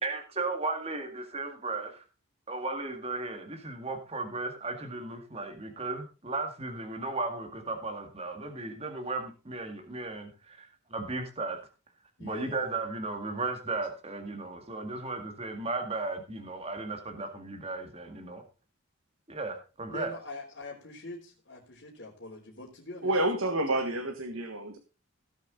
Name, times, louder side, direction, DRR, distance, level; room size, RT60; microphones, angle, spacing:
voice 1, 0.0-2.0 2.5-11.6 12.2-18.4 19.3-20.1, right 3 dB, 30° right, 4 dB, 1.9 m, -35 dB
voice 2, 12.2-12.7 19.9-23.1, left 2 dB, 55° left, -6 dB, 3.2 m, -43 dB
voice 3, 23.0-24.8, right 1 dB, 75° right, 6 dB, 1.5 m, -29 dB
17.0 x 7.4 x 3.9 m, 0.32 s
head